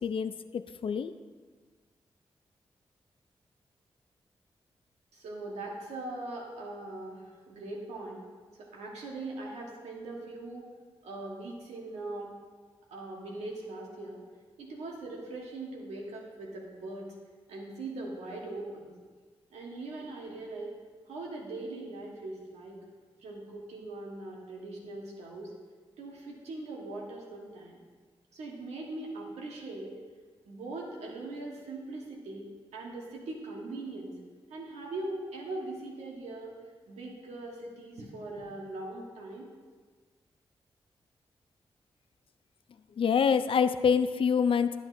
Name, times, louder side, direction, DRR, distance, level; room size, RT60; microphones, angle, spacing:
voice 1, 0.0-1.1 43.0-44.8, left 6 dB, 55° left, 12 dB, 0.4 m, -26 dB
voice 2, 5.1-8.2 8.6-10.7 11.0-12.3 12.9-14.2 14.6-17.1 17.5-18.9 19.5-20.7 21.1-22.8 23.2-25.5 26.0-27.8 28.3-29.9 30.4-34.1 34.5-36.5 36.9-39.5, right 2 dB, 90° right, -2 dB, 1.3 m, -41 dB
10.5 x 7.0 x 2.6 m, 1.5 s
supercardioid pair, 40°, 11 cm